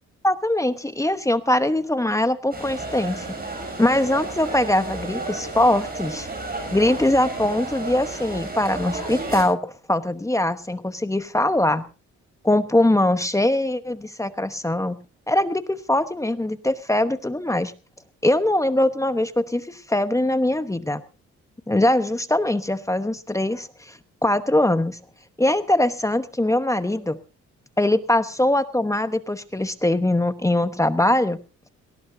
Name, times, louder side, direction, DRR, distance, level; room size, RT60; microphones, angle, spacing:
voice 1, 0.2-3.3 3.8-6.3 6.7-11.8 12.4-15.0 15.3-17.7 18.2-21.0 21.7-25.0 25.4-27.2 27.8-31.4, left 1 dB, 10° left, 11 dB, 1.0 m, -22 dB
sound 1, 2.5-9.4, right 2 dB, 30° right, 6.8 m, -32 dB
19.0 x 18.0 x 2.7 m, 0.32 s
cardioid pair, 90°, 30 cm